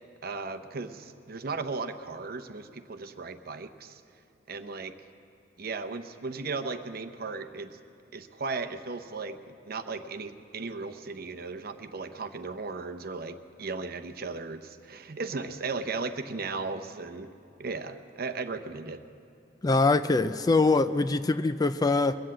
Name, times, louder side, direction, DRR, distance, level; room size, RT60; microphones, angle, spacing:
voice 1, 0.2-4.0 4.5-4.9 5.6-7.8 8.1-17.3 17.6-19.0, right 4 dB, 55° right, 9 dB, 0.8 m, -36 dB
voice 2, 19.6-22.2, left 3 dB, 20° left, 12 dB, 0.3 m, -23 dB
22.0 x 8.0 x 7.6 m, 2.8 s
head